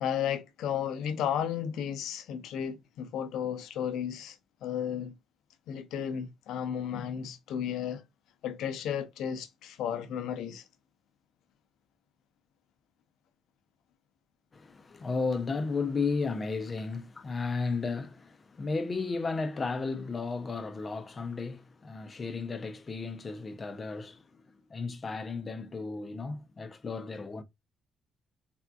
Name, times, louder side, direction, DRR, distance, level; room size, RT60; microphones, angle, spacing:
voice 1, 0.0-5.1 5.7-8.0 8.4-10.6, left 9 dB, 85° left, 0.5 m, -33 dB
voice 2, 14.5-24.4 24.7-27.4, left 4 dB, 35° left, 0.5 m, -34 dB
3.5 x 2.5 x 2.3 m
cardioid pair, 90°, 0 cm